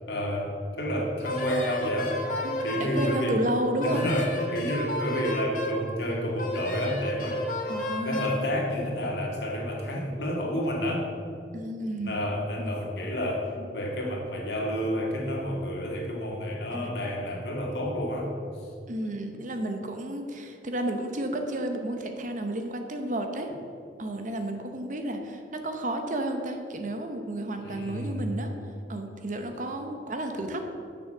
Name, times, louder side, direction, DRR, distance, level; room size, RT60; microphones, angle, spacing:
voice 1, 0.1-2.2 2.6-3.4 3.8-7.4 8.0-11.1 12.0-18.3 18.6-18.7 27.6-28.3, equal, 80° left, -1 dB, 1.9 m, -30 dB
Wind instrument woodwind instrument, 1.2-3.2 3.8-5.8 6.4-8.4, left 1 dB, 50° left, 1.6 m, -32 dB
voice 2, 2.4-4.1 7.7-8.3 11.5-12.2 12.6-12.7 13.6-13.7 14.8-14.9 16.7-16.9 18.9-23.5 24.0-28.6 28.9-30.6, right 1 dB, 45° right, 5 dB, 0.9 m, -32 dB
7.4 x 6.6 x 7.3 m, 2.4 s
head